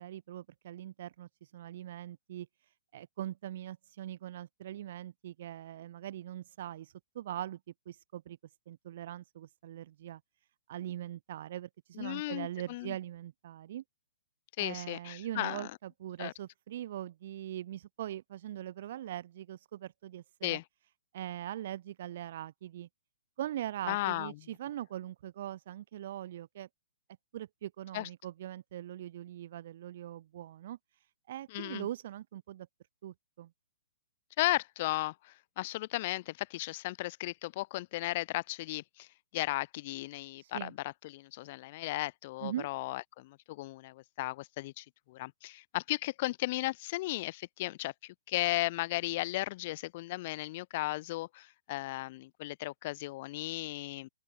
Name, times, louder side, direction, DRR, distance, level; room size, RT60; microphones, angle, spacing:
voice 1, 0.0-2.5 2.9-7.6 7.9-8.4 8.7-10.2 10.7-13.8 14.6-20.6 21.1-22.9 23.4-26.7 27.3-30.8 31.3-32.7 33.0-33.5 40.4-40.7 42.4-42.7, right 12 dB, 55° right, 5.6 m, -41 dB
voice 2, 12.0-12.9 14.6-15.7 16.2-16.3 20.4-20.6 23.9-24.3 27.9-28.1 31.5-31.9 34.4-39.1 39.3-54.1, left 19 dB, 40° left, 1.7 m, -35 dB
open air
hypercardioid pair, 145°, 0 cm